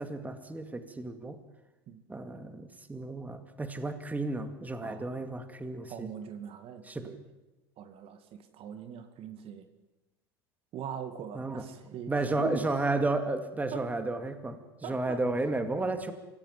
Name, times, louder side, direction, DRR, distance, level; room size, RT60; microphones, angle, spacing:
voice 1, 0.0-1.4 2.1-6.1 6.9-7.1 11.4-11.6 12.1-16.1, right 2 dB, 10° right, 8 dB, 2.4 m, -32 dB
voice 2, 5.9-7.2 7.8-9.7 10.7-12.9 13.7-13.9 14.8-15.2 15.8-16.0, right 8 dB, 45° right, 9 dB, 2.1 m, -41 dB
26.0 x 17.0 x 7.6 m, 1.1 s
hypercardioid pair, 85°, 13 cm